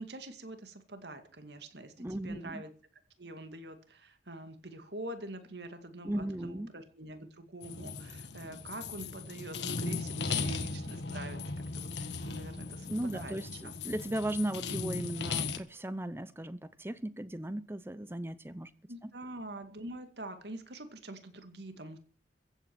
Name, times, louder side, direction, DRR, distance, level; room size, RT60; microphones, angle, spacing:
voice 1, 0.0-2.7 3.2-11.9 12.2-13.4 13.6-13.7 18.9-22.0, right 1 dB, 65° right, 2.3 m, -45 dB
voice 2, 2.0-2.6 6.0-6.7 12.9-18.7 19.0-19.1, right 1 dB, 15° right, 0.6 m, -36 dB
sound 1, 7.6-15.6, left 4 dB, 70° left, 1.5 m, -37 dB
15.5 x 8.6 x 7.8 m
head